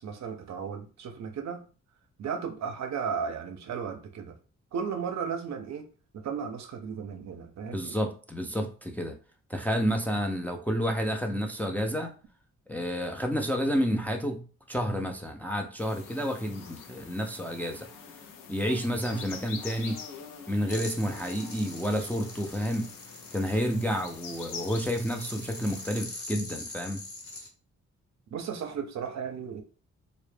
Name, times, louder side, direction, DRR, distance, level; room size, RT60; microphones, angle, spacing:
voice 1, 0.0-1.6 2.2-4.4 4.7-5.9 6.1-8.0 28.3-29.6, right 6 dB, 60° right, 0.5 m, -35 dB
voice 2, 7.7-9.1 9.5-12.1 12.7-17.9 18.5-20.0 20.5-22.9 23.3-27.0, equal, 5° left, 0.4 m, -30 dB
sound 1, 15.8-26.0, left 6 dB, 90° left, 0.5 m, -45 dB
sound 2, 20.7-27.5, left 3 dB, 45° left, 0.8 m, -43 dB
2.0 x 2.0 x 3.1 m
cardioid pair, 55°, 31 cm